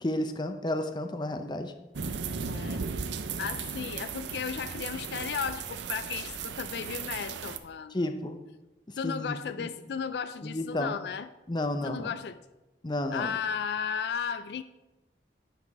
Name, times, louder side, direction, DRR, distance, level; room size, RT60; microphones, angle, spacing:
voice 1, 0.0-1.7 7.9-8.4 9.0-9.7 10.4-11.0 11.5-12.1 12.8-13.4, left 1 dB, 25° left, 7 dB, 0.6 m, -32 dB
sound 1, 1.9-7.6, right 5 dB, 85° right, 0.6 m, -36 dB
voice 2, 2.4-2.9 3.4-8.0 9.0-11.3 11.8-12.4 13.1-14.6, left 7 dB, 65° left, 12 dB, 0.3 m, -35 dB
9.7 x 5.8 x 4.7 m, 1.0 s
head